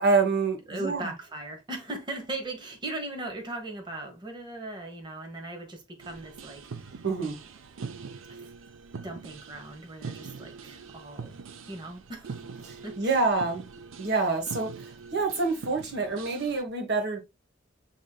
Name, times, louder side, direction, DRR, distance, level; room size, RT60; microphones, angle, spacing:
voice 1, 0.0-1.1 7.0-7.4 12.6-13.6 14.0-17.2, right 3 dB, 60° right, 1.4 m, -27 dB
voice 2, 0.7-6.9 8.3-8.5 9.0-11.4 11.7-12.4 12.8-13.2, right 2 dB, 25° right, 1.1 m, -38 dB
sound 1, 6.0-16.6, right 5 dB, 85° right, 0.5 m, -43 dB
6.2 x 3.6 x 2.3 m
head